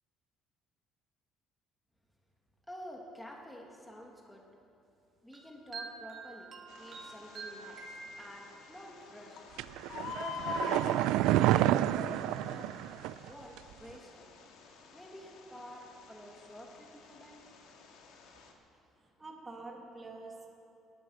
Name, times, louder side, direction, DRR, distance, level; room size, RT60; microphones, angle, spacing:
voice 1, 2.7-4.5 5.2-6.5 6.8-7.9 8.2-9.4 10.1-11.1 11.4-12.7 13.2-14.3 14.9-17.4, equal, 5° left, 0 dB, 2.1 m, -48 dB
sound 1, 5.3-8.8, right 4 dB, 35° right, 2.1 m, -47 dB
Bird, 6.7-18.5, left 4 dB, 80° left, 2.0 m, -46 dB
sound 2, 9.6-13.3 13.6-13.7, right 14 dB, 90° right, 0.4 m, -29 dB
voice 2, 19.0-20.6, right 3 dB, 15° right, -1 dB, 1.8 m, -47 dB
18.5 x 11.0 x 6.3 m, 2.9 s
cardioid pair, 155°, 0 cm